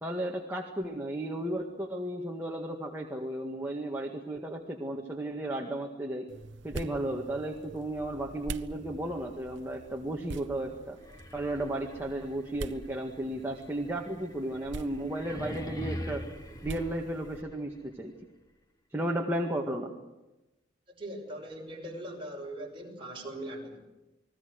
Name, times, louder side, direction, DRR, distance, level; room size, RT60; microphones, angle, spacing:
voice 1, 0.0-6.3 6.6-11.0 11.3-16.2 16.6-18.1 18.9-19.9, right 1 dB, 10° right, 0 dB, 1.8 m, -34 dB
sound 1, 6.3-17.4, right 2 dB, 70° right, 0.9 m, -45 dB
sound 2, 11.0-17.9, equal, 20° left, 1.4 m, -43 dB
voice 2, 20.9-23.8, right 1 dB, 25° right, 0 dB, 6.0 m, -40 dB
29.0 x 20.5 x 6.5 m, 1.0 s
head